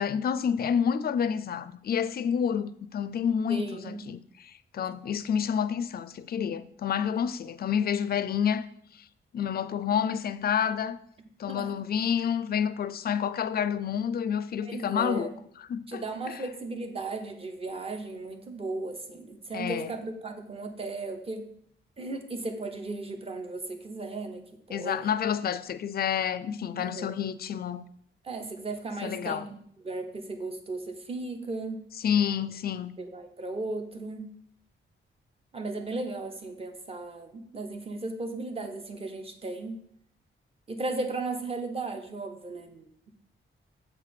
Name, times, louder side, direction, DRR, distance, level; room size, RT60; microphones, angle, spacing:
voice 1, 0.0-8.7 9.3-11.0 11.4-15.3 15.7-16.4 19.5-19.9 24.7-27.8 29.0-29.5 32.0-32.9, left 8 dB, 50° left, 0.4 m, -29 dB
voice 2, 3.5-4.0 11.5-11.7 14.6-15.3 15.9-21.5 22.0-25.1 26.5-27.1 28.2-29.4 29.8-31.8 33.0-34.3 35.5-39.8 40.7-43.1, right 2 dB, 25° right, 0.9 m, -36 dB
7.5 x 4.9 x 5.8 m
wide cardioid pair, 170°, 21 cm